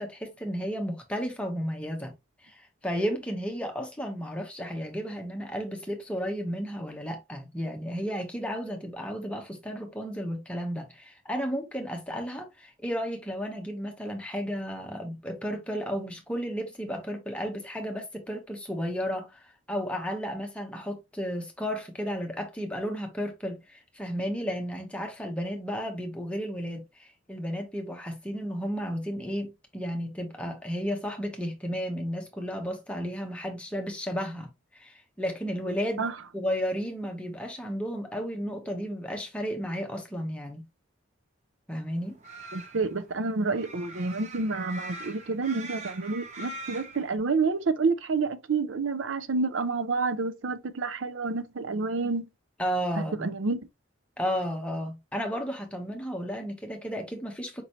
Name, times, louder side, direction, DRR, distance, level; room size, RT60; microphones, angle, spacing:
voice 1, 0.0-2.1 2.4-36.1 36.3-40.6 41.7-42.2 52.6-53.3 54.2-57.6, equal, 5° left, 0.9 m, -33 dB
sound 1, 42.0-47.1, right 2 dB, 35° right, 0.8 m, -42 dB
voice 2, 42.5-52.2 53.0-53.6, right 4 dB, 75° right, 0.6 m, -29 dB
5.3 x 3.0 x 2.8 m
head